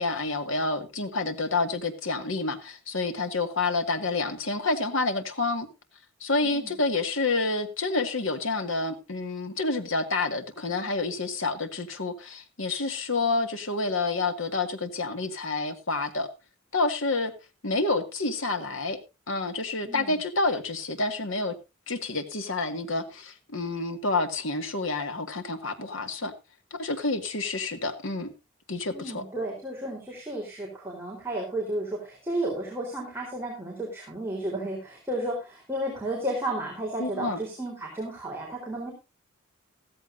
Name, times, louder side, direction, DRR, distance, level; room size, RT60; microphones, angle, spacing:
voice 1, 0.0-5.7 6.2-16.3 16.7-17.3 17.6-19.0 19.3-21.5 21.9-26.3 26.7-28.3 28.7-29.2 37.0-37.4, left 3 dB, 70° left, 7 dB, 1.9 m, -28 dB
voice 2, 28.9-38.9, right 1 dB, 10° right, -3 dB, 3.9 m, -33 dB
15.0 x 14.0 x 2.6 m, 0.27 s
head